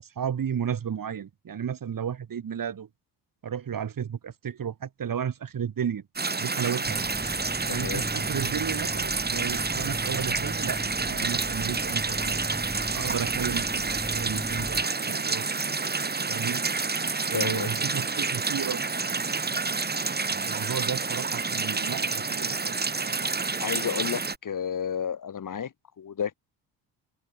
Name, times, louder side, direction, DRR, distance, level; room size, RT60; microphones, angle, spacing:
voice 1, 0.2-2.9 3.4-6.0 6.4-7.0 7.7-12.4 12.9-15.4 16.3-16.6 17.3-18.8 20.3-22.8, right 8 dB, 50° right, 7.3 m, -33 dB
sound 1, 6.2-24.4, right 4 dB, 25° right, 2.5 m, -29 dB
sound 2, 6.8-14.9, equal, ahead, 4.9 m, -38 dB
voice 2, 7.7-8.0 17.1-17.7 20.4-20.6 23.6-26.3, left 7 dB, 45° left, 5.0 m, -32 dB
cardioid pair, 85°, 42 cm